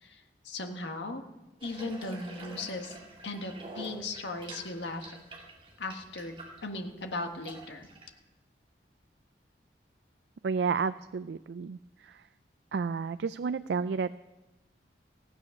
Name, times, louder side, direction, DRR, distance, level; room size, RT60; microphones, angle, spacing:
voice 1, 0.0-1.2 1.6-3.0 3.2-5.1 5.8-6.4 6.6-7.9, left 2 dB, 80° left, 5 dB, 1.4 m, -37 dB
Water tap faucet / Bathtub (filling or washing), 1.6-8.1, right 2 dB, 30° right, 2.2 m, -47 dB
voice 2, 10.4-12.3 12.7-14.2, right 5 dB, 70° right, 13 dB, 0.4 m, -31 dB
16.0 x 8.8 x 6.4 m, 1.0 s
head